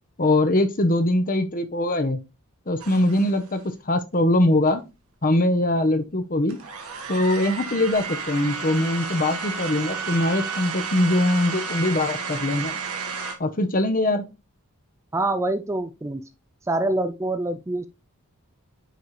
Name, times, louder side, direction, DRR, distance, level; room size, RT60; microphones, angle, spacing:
voice 1, 0.2-2.2 2.7-3.6 3.9-4.8 5.2-6.6 7.1-12.7 13.4-14.2, left 1 dB, 40° left, 0.9 m, -22 dB
sound 1, 2.8-3.5 4.7-4.8 6.5-13.3, right 5 dB, 80° right, 1.6 m, -32 dB
voice 2, 15.1-16.2 16.7-17.9, right 2 dB, 15° right, 0.4 m, -25 dB
9.3 x 4.2 x 3.2 m
head